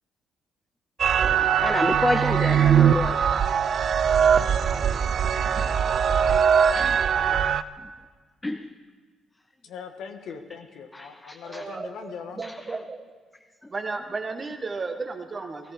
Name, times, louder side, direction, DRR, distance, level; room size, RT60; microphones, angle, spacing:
sound 1, 1.0-7.6, right 8 dB, 55° right, 0.5 m, -21 dB
voice 1, 1.2-3.3 5.5-5.7 6.7-7.0 8.4-8.7 10.9-11.6 12.4-12.5, left 1 dB, 15° left, 0.6 m, -29 dB
voice 2, 9.6-12.4, left 6 dB, 80° left, 1.5 m, -40 dB
voice 3, 11.4-13.0 13.7-15.7, right 3 dB, 35° right, 1.5 m, -34 dB
17.5 x 14.0 x 5.0 m
cardioid pair, 90°, 0 cm